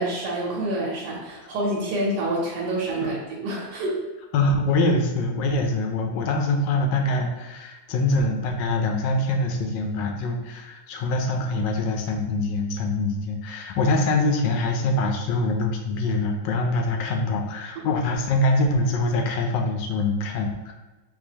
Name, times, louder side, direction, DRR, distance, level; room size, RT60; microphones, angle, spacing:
voice 1, 0.0-4.0, right 1 dB, 75° right, -4 dB, 1.4 m, -27 dB
voice 2, 4.3-20.7, left 2 dB, 80° left, 2 dB, 1.2 m, -24 dB
4.3 x 2.3 x 2.8 m, 1.2 s
omnidirectional pair, 2.0 m